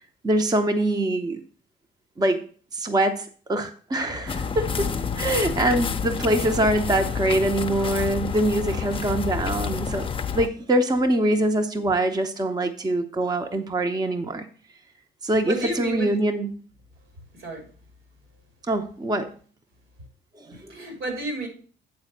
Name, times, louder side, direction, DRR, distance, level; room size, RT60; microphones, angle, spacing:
voice 1, 0.2-1.4 2.2-4.9 5.2-10.1 10.3-14.5 15.2-16.5 18.7-19.3 20.4-20.5, right 1 dB, 20° right, 6 dB, 0.7 m, -24 dB
sound 1, 4.3-10.5, left 6 dB, 25° left, 0.6 m, -29 dB
voice 2, 15.4-16.2 17.4-17.7 20.5-21.5, right 2 dB, 80° right, 3 dB, 3.3 m, -31 dB
8.4 x 4.0 x 6.5 m, 0.42 s
cardioid pair, 90°, 20 cm